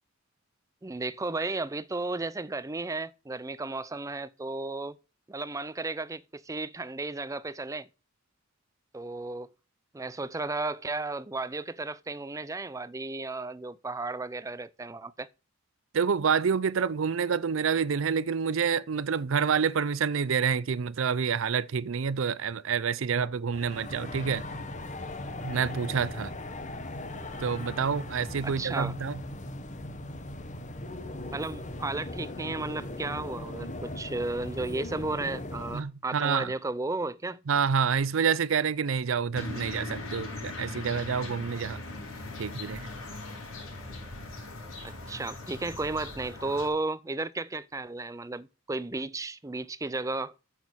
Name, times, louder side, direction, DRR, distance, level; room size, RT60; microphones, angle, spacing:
voice 1, 0.8-5.0 5.3-7.9 8.9-9.5 9.9-15.3 28.4-29.0 31.3-37.4 44.8-50.3, right 3 dB, 15° right, 0.5 m, -34 dB
voice 2, 15.9-24.4 25.4-26.3 27.4-29.2 35.7-36.5 37.5-41.8 42.4-42.9, right 6 dB, 70° right, 0.5 m, -28 dB
sound 1, 23.5-35.8, left 1 dB, 35° left, 1.2 m, -39 dB
sound 2, 39.3-46.7, left 2 dB, 85° left, 5.5 m, -40 dB
9.1 x 7.4 x 6.3 m
head